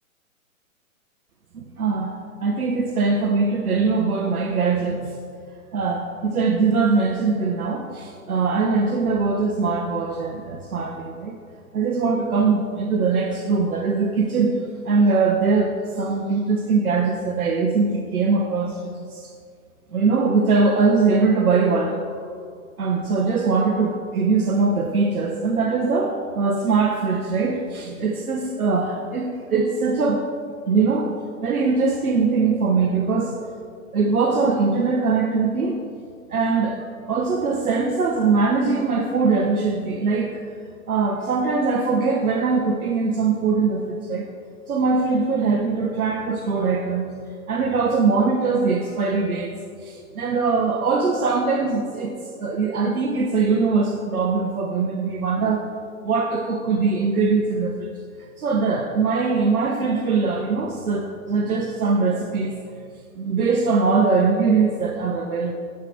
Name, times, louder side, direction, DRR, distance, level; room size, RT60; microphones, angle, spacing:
voice 1, 1.5-5.2 5.7-11.3 11.7-14.5 14.8-19.3 19.9-22.0 22.8-30.2 30.7-31.1 31.4-33.3 33.9-35.8 36.3-36.8 37.1-40.5 40.9-44.3 44.7-47.1 47.5-49.5 49.8-52.1 52.4-55.7 56.0-57.9 58.2-62.6 63.2-65.6, right 4 dB, 90° right, 1 dB, 1.0 m, -22 dB
10.5 x 4.9 x 5.9 m, 2.2 s
hypercardioid pair, 130°, 42 cm